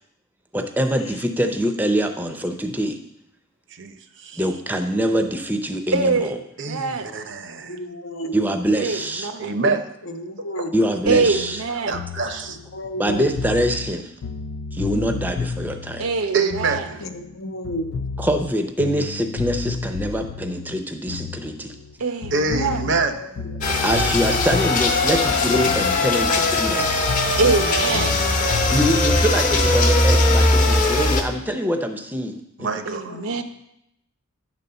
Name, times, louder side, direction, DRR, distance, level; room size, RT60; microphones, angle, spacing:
voice 1, 0.5-3.0 4.4-6.3 8.3-9.3 9.6-9.8 10.7-11.6 13.0-14.1 14.7-16.0 18.2-21.8 23.8-27.1 28.7-32.7, equal, 10° right, 6 dB, 0.5 m, -24 dB
voice 2, 3.7-4.4 6.6-7.8 9.4-9.8 10.4-10.7 11.9-12.6 16.3-17.0 22.3-23.1 27.9-28.7 32.6-33.2, right 4 dB, 55° right, 8 dB, 0.6 m, -26 dB
voice 3, 5.9-7.1 8.8-9.5 11.1-12.0 16.0-17.0 22.0-22.9 27.4-28.2 32.9-33.4, right 4 dB, 85° right, 7 dB, 0.8 m, -24 dB
voice 4, 7.6-8.4 10.1-10.8 12.7-13.3 14.9-15.2 17.0-17.9 22.6-23.3 33.2-33.3, equal, 70° left, 6 dB, 0.8 m, -32 dB
sound 1, 11.1-17.4 17.6-21.9 22.2-26.5 26.8-29.3, left 5 dB, 90° left, 0.4 m, -32 dB
sound 2, 23.6-31.2, left 2 dB, 35° left, 0.8 m, -20 dB
9.8 x 4.1 x 6.7 m, 0.81 s
head